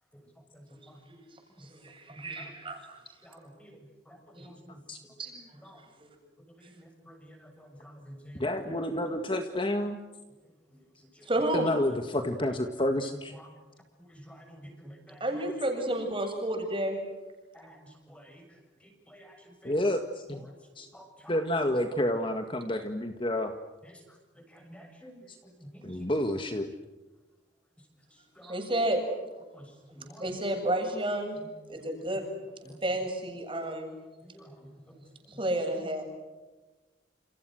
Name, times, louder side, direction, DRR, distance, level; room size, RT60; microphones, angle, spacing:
voice 1, 1.6-3.0 4.3-4.5 5.2-5.3 6.0-6.1 6.6-6.7 11.2-11.7 15.2-17.0 28.4-29.0 30.2-31.4 31.7-32.2 32.8-34.0 35.3-36.0, right 1 dB, 30° right, 3 dB, 7.8 m, -31 dB
voice 2, 3.2-3.7 4.1-4.8 5.7-5.8 6.8-8.4 14.1-14.9 17.5-17.7 18.1-18.4 19.1-19.4 19.6-19.7 20.9-21.3 24.7-25.2 28.4-28.5 29.5-29.7 29.9-30.2 32.7-32.8 34.3-34.4, equal, 5° left, 3 dB, 7.2 m, -50 dB
voice 3, 8.4-10.0 11.5-13.3 19.6-20.4 20.8-20.9 21.3-23.5 25.3-25.4 25.8-26.7, left 1 dB, 30° left, 6 dB, 1.8 m, -29 dB
29.0 x 29.0 x 6.5 m, 1.2 s
head